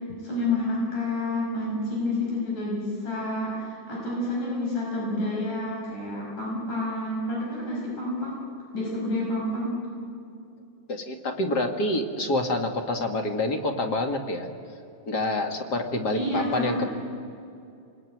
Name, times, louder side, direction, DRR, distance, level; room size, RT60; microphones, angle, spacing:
voice 1, 0.2-8.4 8.7-9.7 16.1-16.8, left 1 dB, 80° left, -3 dB, 7.3 m, -29 dB
voice 2, 10.9-14.5 15.1-16.9, left 2 dB, 35° left, 5 dB, 2.1 m, -27 dB
29.0 x 21.0 x 9.3 m, 2.5 s
omnidirectional pair, 3.6 m